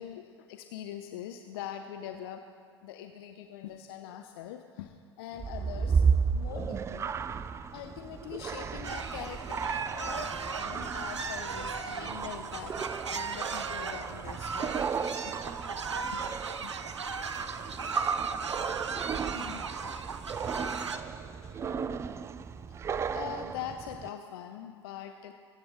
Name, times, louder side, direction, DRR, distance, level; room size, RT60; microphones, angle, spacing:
voice 1, 0.0-2.5 2.8-6.1 6.3-7.1 7.7-14.8 15.2-15.3 16.1-16.2 16.6-16.7 18.9-19.6 22.2-22.3 22.7-22.8 23.1-25.3, left 10 dB, 55° left, 7 dB, 0.7 m, -43 dB
sound 1, 5.4-24.1, right 6 dB, 20° right, 0.4 m, -34 dB
sound 2, 8.8-21.0, right 5 dB, 80° right, 0.6 m, -37 dB
voice 2, 17.1-21.8, left 2 dB, 90° left, -5 dB, 3.0 m, -55 dB
22.0 x 8.7 x 3.7 m, 2.3 s
figure-of-eight pair, 85°, 15 cm